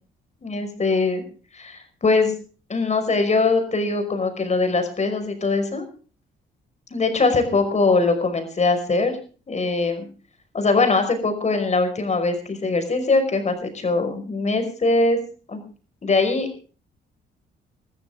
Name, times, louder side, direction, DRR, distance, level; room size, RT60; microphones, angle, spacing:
voice 1, 0.4-1.2 1.5-2.4 2.7-5.8 6.9-9.2 9.5-10.1 10.5-15.2 15.5-15.6 16.0-16.6, left 3 dB, 35° left, 7 dB, 5.3 m, -22 dB
22.0 x 14.0 x 3.7 m, 0.38 s
cardioid pair, 90°, 20 cm